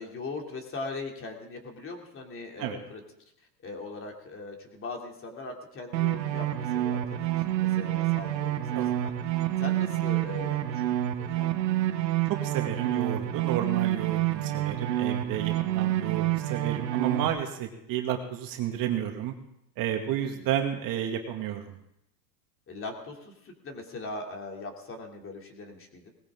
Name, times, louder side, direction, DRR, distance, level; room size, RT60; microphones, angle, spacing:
voice 1, 0.0-3.0 3.6-7.2 7.4-9.1 9.6-11.5 15.8-16.0 20.2-20.5 22.7-26.1, left 3 dB, 25° left, 2 dB, 2.9 m, -40 dB
sound 1, 5.9-17.3, right 13 dB, 85° right, 1.4 m, -28 dB
voice 2, 12.3-19.3 19.8-21.8, right 10 dB, 40° right, 3 dB, 2.1 m, -31 dB
19.0 x 16.0 x 3.7 m, 0.80 s
supercardioid pair, 120°, 50 cm